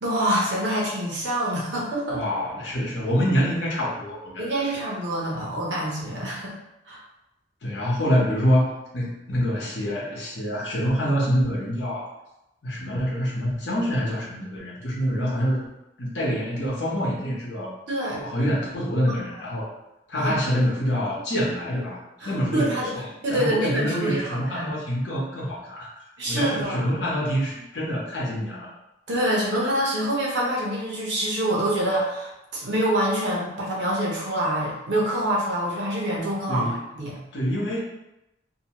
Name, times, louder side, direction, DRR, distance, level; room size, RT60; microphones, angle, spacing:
voice 1, 0.0-2.2 4.4-6.6 6.9-7.0 17.9-18.2 20.2-20.3 22.2-22.9 23.2-24.7 26.2-27.0 29.1-37.2, right 1 dB, 85° right, -3 dB, 0.8 m, -26 dB
voice 2, 2.1-4.6 6.0-6.3 7.6-12.1 12.6-15.6 16.0-17.7 18.2-19.7 20.1-22.0 22.2-23.0 23.3-25.9 26.3-28.7 36.5-36.8 37.3-37.8, equal, 75° left, -5 dB, 1.0 m, -26 dB
2.7 x 2.2 x 2.9 m, 0.89 s
head